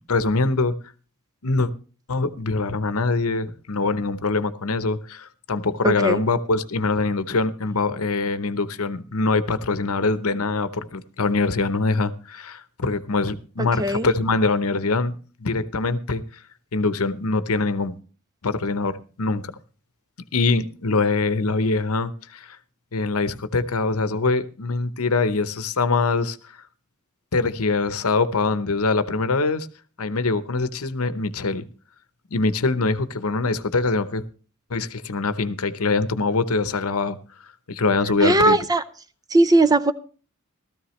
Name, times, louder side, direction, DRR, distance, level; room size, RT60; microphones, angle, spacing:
voice 1, 0.1-0.7 1.4-1.7 2.1-15.1 15.4-16.2 16.7-18.0 18.4-19.5 20.3-22.6 22.9-26.4 27.3-29.7 30.0-31.6 32.3-34.2 34.7-37.2 37.7-38.6, left 3 dB, 70° left, 0.9 m, -23 dB
voice 2, 5.8-6.2 13.8-14.1 38.2-38.8 39.3-39.9, right 2 dB, 15° right, 0.6 m, -18 dB
16.0 x 13.5 x 3.2 m
head